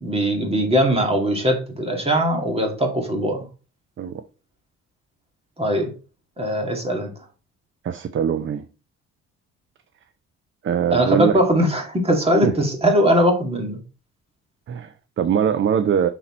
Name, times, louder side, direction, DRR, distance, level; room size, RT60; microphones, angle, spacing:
voice 1, 0.0-3.5 5.6-5.9 6.4-7.1 10.9-13.8, equal, 20° right, 2.0 m, -20 dB
voice 2, 7.8-8.6 10.6-11.4 12.4-12.5 14.7-16.1, right 8 dB, 40° right, 0.5 m, -22 dB
5.8 x 4.0 x 4.2 m
cardioid pair, 90°, 30 cm